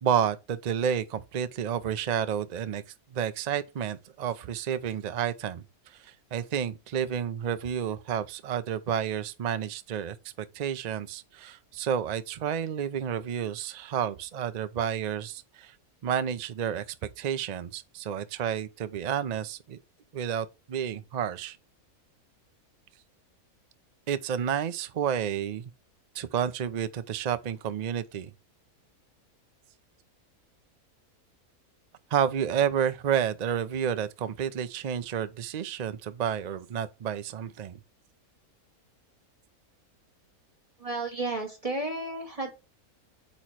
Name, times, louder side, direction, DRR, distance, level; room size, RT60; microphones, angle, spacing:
voice 1, 0.0-2.8 3.1-15.7 16.0-16.8 17.2-19.8 20.1-21.6 24.1-25.7 26.1-28.3 32.1-37.8, right 8 dB, 85° right, 0.3 m, -30 dB
voice 2, 40.8-42.5, right 2 dB, 25° right, 1.8 m, -32 dB
8.3 x 3.1 x 4.5 m
omnidirectional pair, 1.5 m